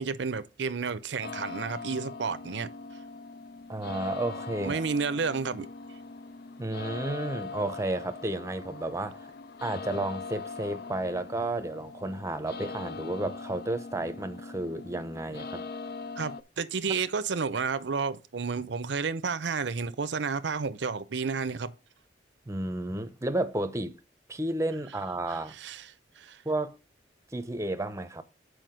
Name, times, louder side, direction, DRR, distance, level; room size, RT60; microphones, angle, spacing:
voice 1, 0.0-2.7 4.6-5.7 16.2-21.7 25.3-25.8 26.2-26.4, right 5 dB, 75° right, 0.6 m, -31 dB
sound 1, 1.2-16.4, left 4 dB, 60° left, 0.5 m, -41 dB
voice 2, 3.7-4.8 6.6-9.3 9.6-15.7 22.5-24.0 24.3-25.5 26.4-26.7 27.3-28.2, right 1 dB, 15° right, 0.7 m, -32 dB
7.7 x 5.0 x 5.0 m
head